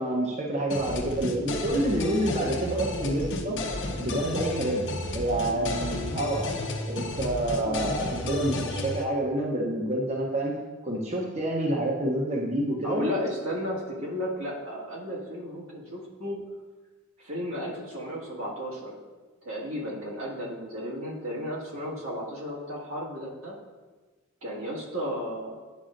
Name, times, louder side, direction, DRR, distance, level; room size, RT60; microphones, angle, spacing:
voice 1, 0.0-3.6 4.0-4.8 5.1-6.5 6.9-10.5 10.8-13.1, right 1 dB, 35° right, -1 dB, 0.8 m, -28 dB
sound 1, 0.7-9.0, left 1 dB, 60° left, 0.7 m, -33 dB
voice 2, 12.8-16.4 17.2-19.0 19.4-23.6 24.4-25.6, equal, 85° right, -5 dB, 1.8 m, -34 dB
9.9 x 5.4 x 2.5 m, 1.3 s
head